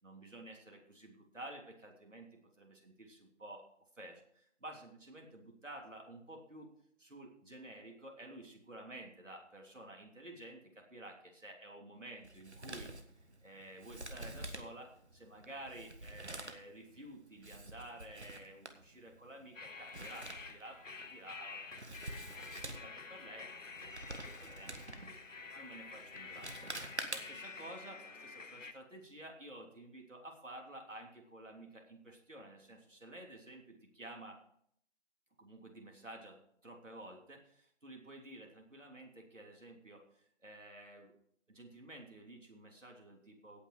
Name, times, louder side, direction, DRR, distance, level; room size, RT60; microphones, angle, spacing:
voice 1, 0.0-3.6 4.0-6.7 7.0-12.9 13.4-23.5 23.8-26.6 27.1-34.4 35.4-41.1 41.5-43.6, right 1 dB, 80° right, 1 dB, 3.3 m, -52 dB
Male speech man speaking, 12.2-27.6, right 2 dB, 60° right, 1.5 m, -48 dB
sound 1, 19.5-28.7, left 4 dB, 90° left, 1.1 m, -49 dB
17.0 x 5.9 x 4.9 m, 0.66 s
figure-of-eight pair, 180°, 37 cm